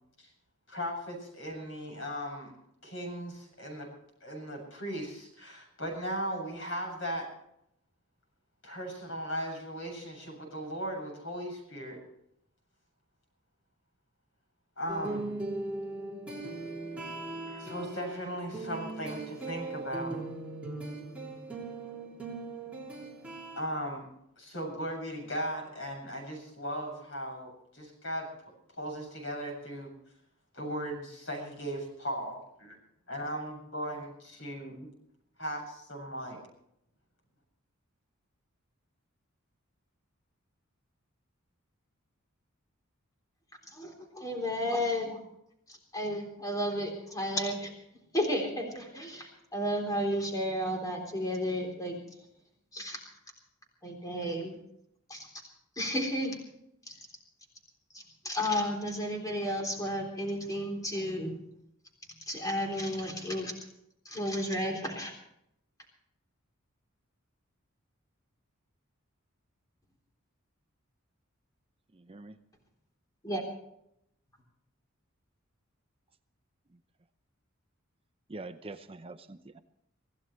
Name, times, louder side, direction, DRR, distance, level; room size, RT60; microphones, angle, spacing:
voice 1, 0.7-2.5 2.8-3.9 4.2-7.3 8.6-12.0 14.8-15.3 17.5-20.3 23.6-24.1 24.4-28.3 28.8-29.9 30.5-32.8 33.1-34.9 35.4-36.4, equal, 65° left, 1 dB, 7.5 m, -37 dB
sound 1, 14.9-23.6, right 2 dB, 5° right, 3.1 m, -39 dB
voice 2, 43.7-45.2 45.7-47.7 48.1-52.0 52.7-53.0 53.8-54.6 55.1-55.3 55.8-56.4 56.9-57.0 57.9-61.4 62.3-63.5 64.1-65.1 73.2-73.4, equal, 15° left, 1 dB, 3.6 m, -32 dB
voice 3, 71.9-72.4 78.3-79.6, right 2 dB, 25° right, 8 dB, 0.6 m, -44 dB
25.5 x 16.0 x 3.2 m, 0.76 s
head